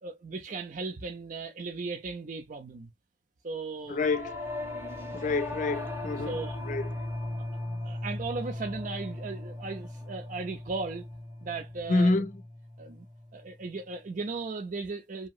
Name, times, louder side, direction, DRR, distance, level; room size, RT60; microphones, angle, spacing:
voice 1, 0.0-2.9 3.4-4.0 6.2-6.6 7.8-11.1 11.4-12.1 12.8-13.0 13.3-15.3, right 3 dB, 45° right, 0.4 m, -36 dB
voice 2, 3.9-4.4 5.1-6.4 6.6-6.9 11.9-12.3, left 3 dB, 40° left, 0.4 m, -27 dB
Singing / Musical instrument, 3.9-13.4, left 1 dB, 15° right, 0.9 m, -38 dB
2.8 x 2.8 x 2.3 m
head